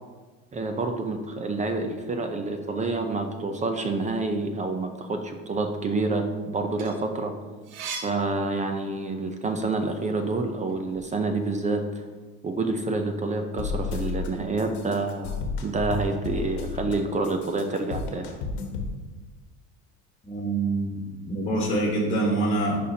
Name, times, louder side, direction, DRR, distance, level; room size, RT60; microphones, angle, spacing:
voice 1, 0.5-7.3 8.0-12.0 12.4-15.4 15.6-18.3, right 3 dB, 20° right, 5 dB, 0.6 m, -28 dB
sound 1, 6.8-9.2 9.6-11.0, right 5 dB, 90° right, 1.0 m, -40 dB
sound 2, 13.6-14.3 14.6-16.9 17.2-18.9, left 5 dB, 80° left, 1.3 m, -32 dB
voice 2, 20.2-22.8, right 2 dB, 20° left, -2 dB, 1.4 m, -25 dB
11.0 x 4.3 x 2.8 m, 1.3 s
supercardioid pair, 120°, 32 cm